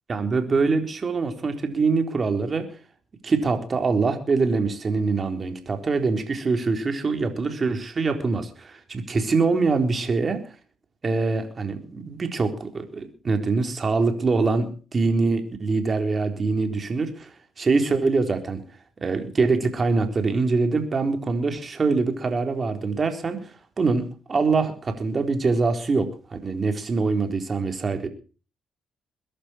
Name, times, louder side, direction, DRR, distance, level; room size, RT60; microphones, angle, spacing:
voice 1, 0.1-2.7 3.2-10.4 11.0-17.3 17.6-18.6 19.0-23.5 23.8-28.1, right 4 dB, 35° right, 6 dB, 3.9 m, -24 dB
22.0 x 12.0 x 4.5 m, 0.37 s
cardioid pair, 90°, 0 cm